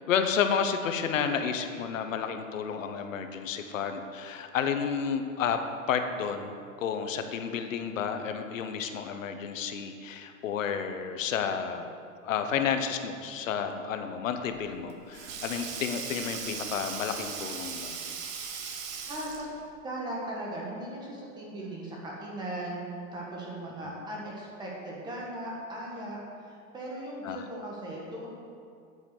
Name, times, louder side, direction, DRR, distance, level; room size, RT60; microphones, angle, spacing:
voice 1, 0.1-5.6 5.9-11.9 12.2-18.0 27.2-27.4, left 7 dB, 65° left, 7 dB, 1.0 m, -31 dB
Sink (filling or washing), 14.5-19.6, right 6 dB, 75° right, 1.6 m, -38 dB
voice 2, 19.1-19.4 19.8-22.8 23.1-28.3, right 1 dB, 10° right, -3 dB, 1.3 m, -38 dB
8.8 x 8.5 x 6.6 m, 2.4 s
supercardioid pair, 170°, 41 cm